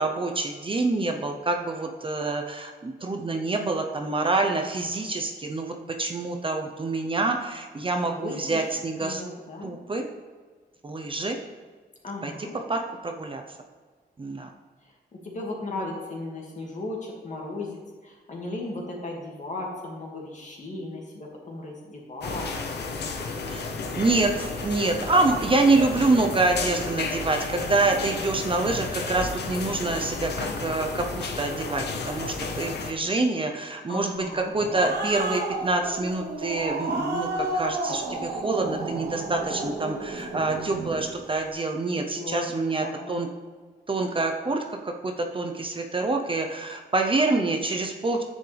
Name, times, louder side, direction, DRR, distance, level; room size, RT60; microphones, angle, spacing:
voice 1, 0.0-9.2 9.6-10.0 10.8-11.4 12.2-13.4 14.2-14.5 23.4-23.7 24.0-43.3 43.9-48.2, right 3 dB, 30° right, 3 dB, 0.8 m, -26 dB
voice 2, 8.0-8.7 9.0-9.7 12.0-12.6 15.2-22.5 22.8-22.9 33.9-35.1 42.2-43.2, left 2 dB, 45° left, -1 dB, 2.3 m, -36 dB
sound 1, 22.2-32.9, left 4 dB, 75° left, 0.9 m, -32 dB
Growling, 34.3-41.1, right 2 dB, 75° right, 1.6 m, -31 dB
10.5 x 7.3 x 3.5 m, 1.5 s
cardioid pair, 95°, 17 cm